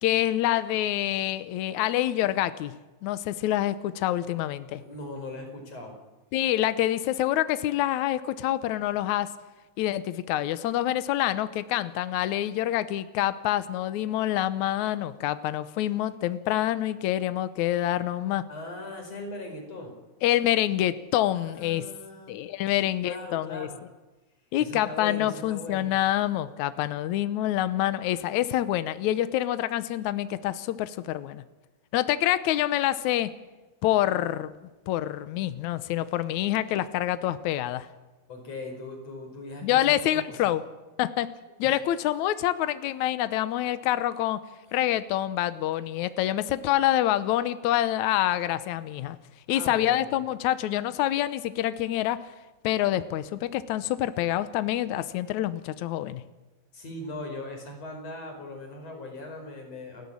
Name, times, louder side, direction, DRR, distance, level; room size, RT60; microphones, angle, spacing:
voice 1, 0.0-2.7 3.0-4.8 6.3-9.3 9.8-18.4 20.2-21.9 22.3-23.7 24.5-31.4 31.9-33.3 33.8-34.5 34.9-37.9 39.6-40.6 41.0-41.3 41.6-44.4 44.7-49.2 49.5-52.2 52.6-56.2, left 13 dB, 80° left, 13 dB, 1.7 m, -26 dB
voice 2, 4.7-6.0 18.5-19.9 21.3-22.3 22.7-23.8 24.6-26.0 38.3-40.3 49.5-50.0 56.7-60.1, left 2 dB, 40° left, 3 dB, 5.9 m, -39 dB
29.0 x 15.0 x 8.7 m, 1.2 s
omnidirectional pair, 4.6 m